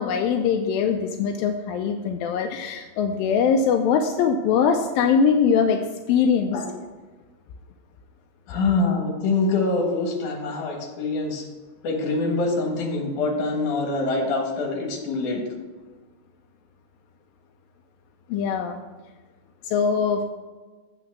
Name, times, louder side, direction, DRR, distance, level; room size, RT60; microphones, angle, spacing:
voice 1, 0.0-5.8 6.1-6.6 18.3-18.8 19.6-20.2, left 6 dB, 85° left, 5 dB, 2.3 m, -22 dB
voice 2, 8.5-11.4 11.8-15.4, left 3 dB, 65° left, 0 dB, 2.9 m, -25 dB
8.1 x 5.8 x 6.1 m, 1.3 s
omnidirectional pair, 4.0 m